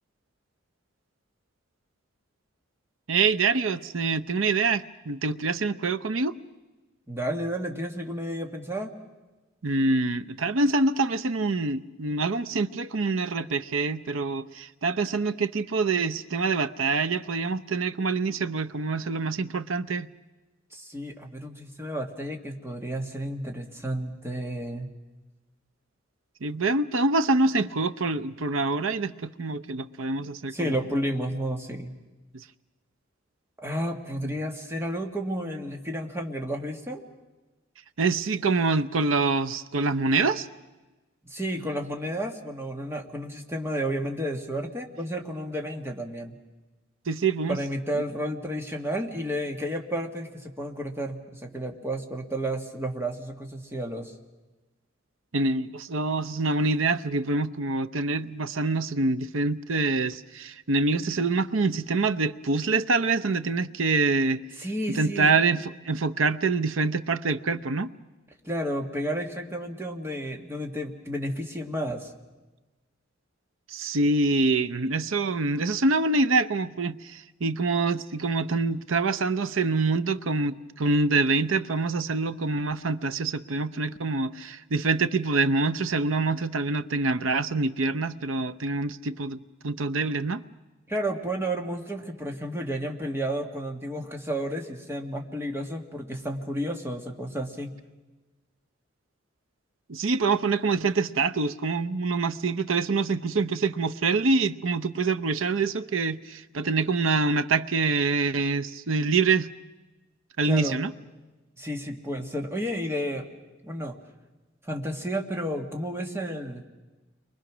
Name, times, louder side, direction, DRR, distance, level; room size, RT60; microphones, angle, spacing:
voice 1, 3.1-6.3 9.6-20.1 26.4-30.7 34.2-34.3 38.0-40.5 47.1-47.6 55.3-64.4 64.9-67.9 73.7-89.4 89.6-90.4 99.9-109.5 110.4-110.9, right 3 dB, 80° right, 13 dB, 0.8 m, -25 dB
voice 2, 7.1-8.9 20.7-24.9 30.5-32.0 33.6-37.0 41.3-46.4 47.5-54.1 64.6-65.3 68.4-72.1 90.9-97.7 110.4-110.8 111.6-113.3 113.6-114.0 114.6-116.6, equal, 15° right, 3 dB, 1.9 m, -32 dB
29.5 x 23.5 x 6.2 m, 1.2 s
head